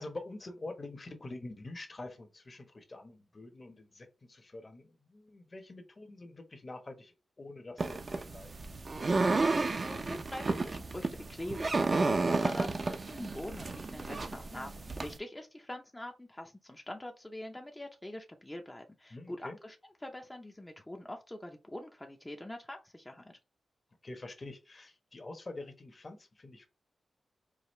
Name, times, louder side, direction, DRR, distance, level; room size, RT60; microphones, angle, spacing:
voice 1, 0.0-8.7 19.1-19.6 24.0-26.7, left 2 dB, 40° left, 6 dB, 1.0 m, -46 dB
sound 1, 7.8-15.2, right 3 dB, 45° right, 0.6 m, -32 dB
voice 2, 9.8-23.4, left 1 dB, 15° left, 3 dB, 0.6 m, -44 dB
4.9 x 2.4 x 3.1 m, 0.29 s
cardioid pair, 75°, 0 cm